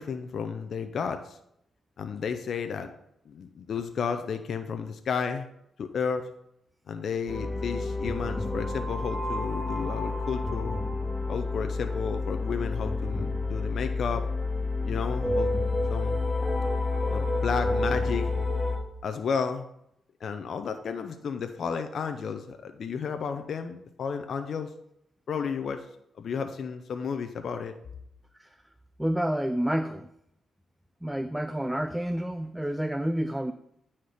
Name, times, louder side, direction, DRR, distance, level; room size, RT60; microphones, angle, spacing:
voice 1, 0.0-1.4 2.0-2.9 3.3-5.5 5.8-6.3 6.9-10.8 11.3-14.3 14.8-15.5 15.9-16.3 17.1-18.3 19.0-19.6 20.2-24.7 25.3-25.8 26.2-27.8, left 6 dB, 65° left, 7 dB, 0.6 m, -32 dB
sound 1, 7.3-18.8, left 2 dB, 15° left, 2.4 m, -29 dB
voice 2, 29.0-30.1 31.0-33.5, right 1 dB, 5° right, 9 dB, 0.4 m, -29 dB
9.4 x 4.3 x 4.9 m, 0.77 s
cardioid pair, 85°, 0 cm